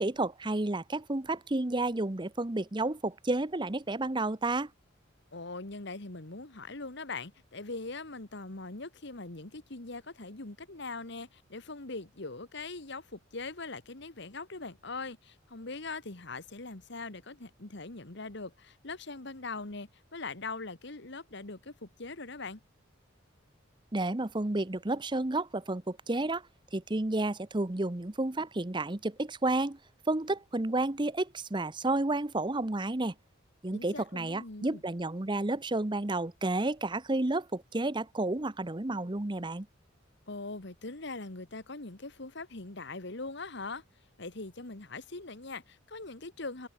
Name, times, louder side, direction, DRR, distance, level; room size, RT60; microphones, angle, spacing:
voice 1, 0.0-4.7 23.9-26.4 26.7-29.8 30.1-33.1 33.6-39.7, right 2 dB, 25° right, 0.9 m, -31 dB
voice 2, 5.3-22.6 33.7-34.8 40.3-43.8 44.2-46.7, left 3 dB, 60° left, 1.8 m, -41 dB
head